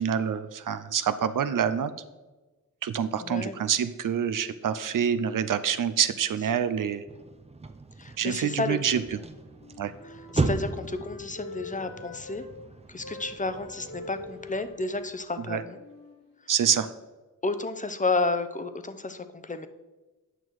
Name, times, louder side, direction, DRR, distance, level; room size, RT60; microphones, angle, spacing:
voice 1, 0.0-1.9 2.8-7.0 8.2-9.2 9.8-9.9 15.5-15.6 16.5-16.9, right 8 dB, 70° right, 13 dB, 0.6 m, -26 dB
voice 2, 3.2-3.6 8.0-9.0 10.0-12.4 12.9-15.8 17.4-19.7, left 3 dB, 25° left, 10 dB, 0.7 m, -31 dB
sound 1, 7.1-15.4, right 3 dB, 20° right, 0.6 m, -36 dB
Wind instrument woodwind instrument, 9.5-12.5 13.0-16.8, left 2 dB, 90° left, 3.1 m, -45 dB
9.1 x 6.1 x 4.7 m, 1.2 s
wide cardioid pair, 80°, 33 cm